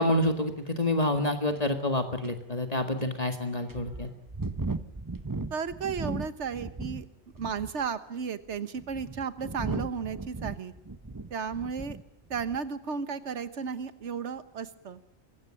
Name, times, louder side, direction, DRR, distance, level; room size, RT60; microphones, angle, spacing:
voice 1, 0.0-4.1, left 1 dB, 35° left, 6 dB, 2.0 m, -28 dB
sound 1, 1.6-1.7 2.2-2.3 3.0-3.1 3.7-7.1 7.3-7.8 8.5-12.0 12.3-12.6, right 3 dB, 20° right, 0.9 m, -36 dB
voice 2, 5.5-7.0 7.4-10.7 11.3-12.0 12.3-15.0, right 6 dB, 80° right, 13 dB, 1.5 m, -34 dB
24.0 x 16.0 x 9.9 m, 0.78 s
omnidirectional pair, 1.2 m